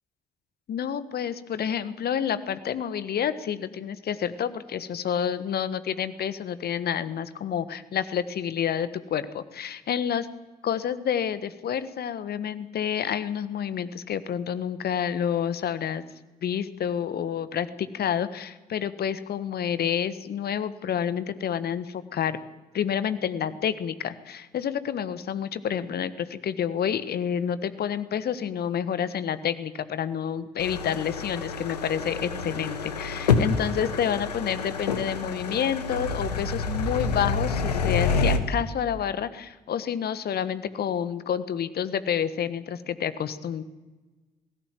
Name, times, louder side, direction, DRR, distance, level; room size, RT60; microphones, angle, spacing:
voice 1, 0.7-10.3 10.6-16.0 16.4-22.4 22.7-43.6, left 8 dB, 50° left, 14 dB, 1.5 m, -29 dB
sound 1, 30.6-38.4, left 4 dB, 85° left, 1.2 m, -28 dB
20.5 x 16.5 x 9.1 m, 1.2 s
figure-of-eight pair, 40°, 20 cm